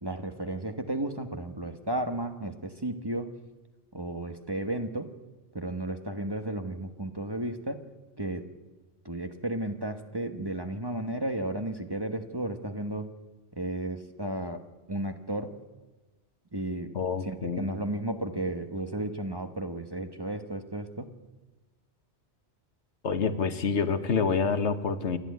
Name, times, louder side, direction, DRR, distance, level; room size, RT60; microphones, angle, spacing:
voice 1, 0.0-3.3 3.9-5.1 5.5-7.8 8.2-8.5 9.0-13.1 13.6-14.6 14.9-15.6 16.5-16.9 17.2-21.1, right 1 dB, 20° right, 7 dB, 1.3 m, -33 dB
voice 2, 16.9-17.7 23.0-25.2, left 5 dB, 75° left, 10 dB, 1.5 m, -27 dB
28.5 x 11.0 x 9.4 m, 1.2 s
omnidirectional pair, 1.2 m